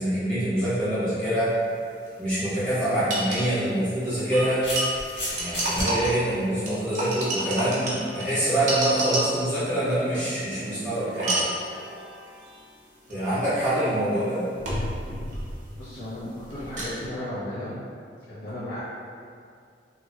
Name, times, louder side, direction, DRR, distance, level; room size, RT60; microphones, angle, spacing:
voice 1, 0.0-1.5 2.2-4.6 5.3-11.5 13.1-14.4, right 1 dB, 5° left, -15 dB, 1.3 m, -25 dB
sound 1, 2.1-2.2 2.3-2.4 3.1-3.5 4.3-6.3 6.7-9.5 11.1-11.6 13.1-13.2 14.6-15.9 16.2-17.1, right 1 dB, 40° right, 0.6 m, -29 dB
sound 2, 2.8-2.9 3.9-5.9, equal, 90° left, 1.3 m, -32 dB
sound 3, 9.7-12.7, right 3 dB, 80° right, 0.3 m, -43 dB
voice 2, 15.8-17.8 18.3-18.8, left 1 dB, 70° left, -13 dB, 0.8 m, -34 dB
3.0 x 2.5 x 2.7 m, 2.3 s
head